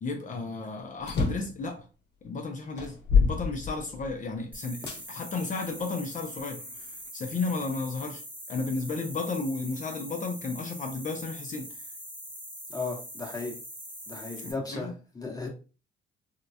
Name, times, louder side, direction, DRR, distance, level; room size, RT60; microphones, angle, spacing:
voice 1, 0.0-1.8 2.2-6.6 7.1-8.2 8.5-11.7 14.4-14.9, left 3 dB, 40° left, 0.5 m, -33 dB
sound 1, 1.0-1.6 2.2-2.3 2.8-4.2 4.9-5.0 5.7-6.8, left 5 dB, 60° left, 1.0 m, -27 dB
sound 2, 4.5-14.5, equal, 10° right, 0.9 m, -43 dB
voice 2, 12.7-13.6 14.1-15.5, left 3 dB, 20° left, 1.0 m, -35 dB
3.6 x 2.1 x 2.7 m
cardioid pair, 90°, 20 cm